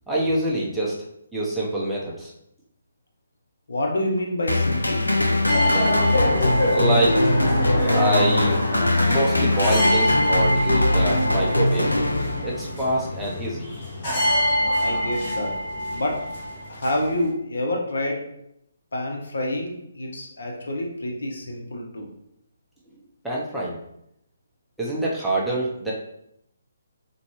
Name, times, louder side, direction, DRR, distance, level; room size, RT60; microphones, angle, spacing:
voice 1, 0.1-1.0 1.3-2.3 6.6-7.2 7.9-8.7 9.1-11.9 12.4-13.7 23.2-23.8 24.8-25.9, right 1 dB, 5° right, -7 dB, 0.6 m, -25 dB
voice 2, 3.7-5.0 14.8-15.5 15.9-16.2 16.7-18.2 18.9-22.1, left 1 dB, 70° left, 0 dB, 0.8 m, -27 dB
sound 1, 4.5-12.8, left 1 dB, 90° left, 0.4 m, -21 dB
sound 2, 5.5-17.3, left 1 dB, 45° left, 1.1 m, -25 dB
3.9 x 2.2 x 3.0 m, 0.77 s
figure-of-eight pair, 140°, 0 cm